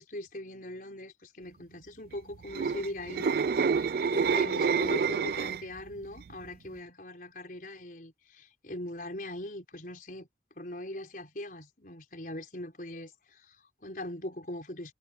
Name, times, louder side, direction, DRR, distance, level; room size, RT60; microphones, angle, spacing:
voice 1, 0.0-10.3 10.6-14.9, left 1 dB, 50° left, 4.8 m, -41 dB
sound 1, 2.3-5.8 6.2-6.5, right 5 dB, 55° right, 0.3 m, -28 dB
head